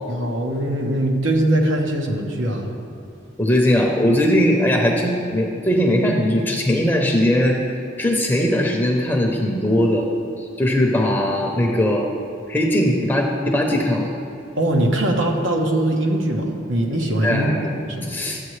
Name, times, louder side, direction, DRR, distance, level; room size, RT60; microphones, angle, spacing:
voice 1, 0.1-2.7 14.6-17.5 17.8-18.2, right 1 dB, 80° right, 1 dB, 1.2 m, -21 dB
voice 2, 3.4-7.6 8.0-10.1 10.6-12.1 12.5-14.1 17.2-18.4, left 1 dB, 10° left, 0 dB, 0.7 m, -19 dB
12.5 x 7.8 x 3.2 m, 2.6 s
head